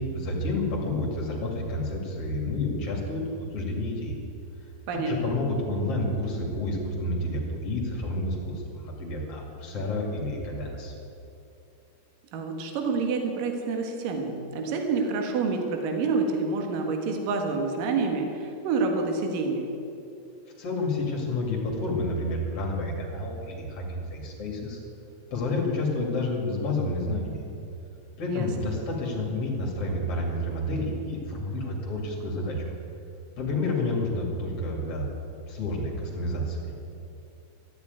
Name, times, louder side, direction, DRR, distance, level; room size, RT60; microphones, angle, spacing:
voice 1, 0.0-4.2 4.9-10.9 20.6-24.8 25.3-27.4 28.2-32.7 33.4-35.1 35.5-36.6, left 2 dB, 40° left, -1 dB, 2.7 m, -29 dB
voice 2, 12.3-19.7 28.3-28.5, right 4 dB, 60° right, 3 dB, 2.7 m, -28 dB
14.0 x 8.2 x 9.3 m, 2.6 s
omnidirectional pair, 5.1 m